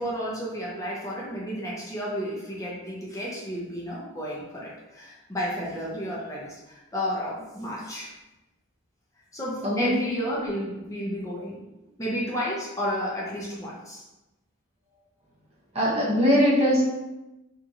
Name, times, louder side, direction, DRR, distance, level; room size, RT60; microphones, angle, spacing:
voice 1, 0.0-8.1 9.3-11.6 12.0-14.0, equal, 15° left, -5 dB, 0.5 m, -32 dB
voice 2, 9.6-10.0 15.7-16.8, equal, 30° right, -6 dB, 0.8 m, -21 dB
2.8 x 2.7 x 2.4 m, 1.0 s
head